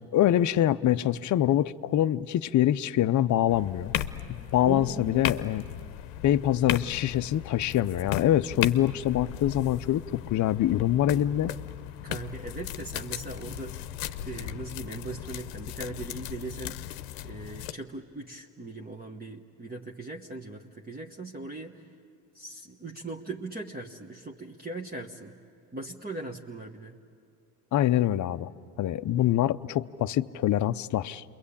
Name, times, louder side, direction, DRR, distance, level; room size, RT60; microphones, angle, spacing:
voice 1, 0.1-3.9 4.5-5.6 6.2-11.5 27.7-28.5 28.8-31.2, left 12 dB, 40° left, 11 dB, 0.6 m, -25 dB
sound 1, 3.5-17.7, left 12 dB, 80° left, 0.9 m, -36 dB
voice 2, 4.7-5.4 12.0-13.8 14.3-21.9 22.3-25.4 25.7-27.0, right 2 dB, 20° right, 0 dB, 1.2 m, -39 dB
28.5 x 22.5 x 8.6 m, 2.4 s
supercardioid pair, 80°, 44 cm